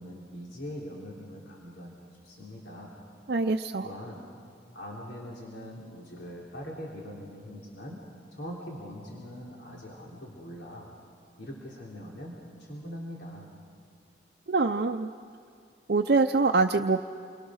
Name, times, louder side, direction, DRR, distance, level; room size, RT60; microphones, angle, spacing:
voice 1, 0.0-2.0 2.2-2.9 3.8-4.2 4.7-8.0 8.3-10.9 11.4-12.3 12.6-13.5, equal, 75° left, -4 dB, 3.5 m, -42 dB
voice 2, 3.3-3.9 14.5-15.1 15.9-17.0, right 3 dB, 60° right, 5 dB, 0.6 m, -24 dB
28.5 x 23.0 x 6.4 m, 2.3 s
head